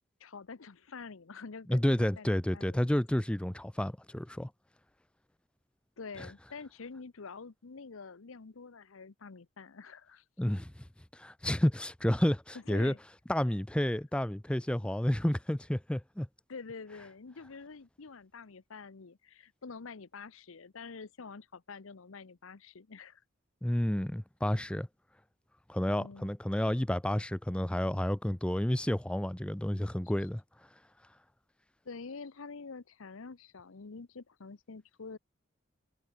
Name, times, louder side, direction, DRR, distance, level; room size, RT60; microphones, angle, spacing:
voice 1, 0.2-2.9 6.0-10.2 12.7-13.0 16.5-23.2 25.9-26.4 31.8-35.2, left 4 dB, 80° left, 0.8 m, -47 dB
voice 2, 1.7-4.5 6.2-6.3 10.4-10.8 11.1-12.9 13.3-16.3 23.6-24.9 25.7-30.4, left 1 dB, 5° left, 0.4 m, -30 dB
head